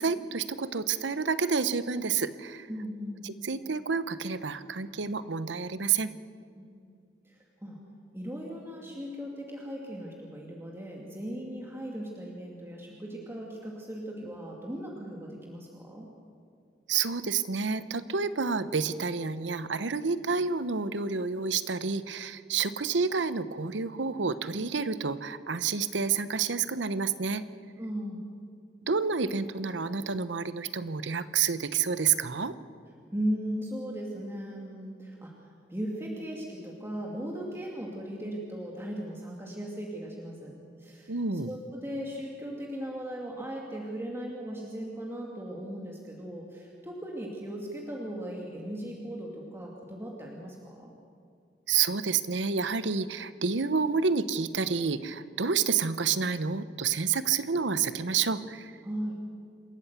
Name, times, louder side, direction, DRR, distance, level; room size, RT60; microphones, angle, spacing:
voice 1, 0.0-2.7 3.2-6.1 16.9-27.4 28.9-32.5 41.1-41.5 51.7-58.7, right 5 dB, 80° right, 14 dB, 0.9 m, -29 dB
voice 2, 2.7-3.2 6.6-6.7 7.2-7.8 8.1-16.1 27.8-28.3 33.1-35.3 35.7-41.1 41.5-50.9 58.8-59.2, equal, 15° right, -2 dB, 2.3 m, -37 dB
27.0 x 14.0 x 8.2 m, 2.3 s
head